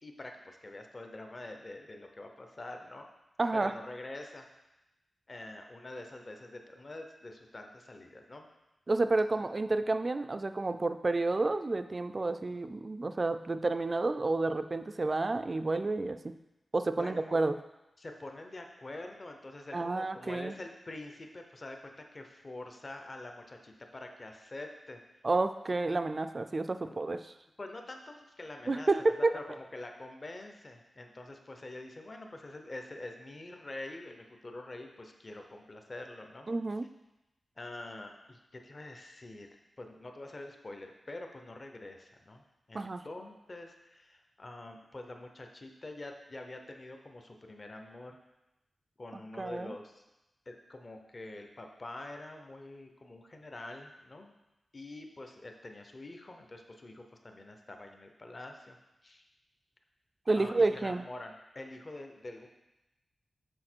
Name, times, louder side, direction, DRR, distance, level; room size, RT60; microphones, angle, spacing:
voice 1, 0.0-3.1 3.5-4.5 5.3-8.5 16.9-17.4 18.0-25.0 27.6-36.5 37.6-39.5 39.8-48.2 49.0-50.0 50.5-54.3 54.7-59.3 60.3-62.5, left 2 dB, 35° left, 4 dB, 0.7 m, -46 dB
voice 2, 3.4-3.7 8.9-16.3 16.7-17.6 19.7-20.5 25.2-27.2 28.7-29.3 36.5-36.9 42.7-43.0 49.4-49.7 60.3-61.0, right 3 dB, 35° right, 10 dB, 0.3 m, -30 dB
6.3 x 4.8 x 4.5 m, 0.96 s
wide cardioid pair, 105°, 0 cm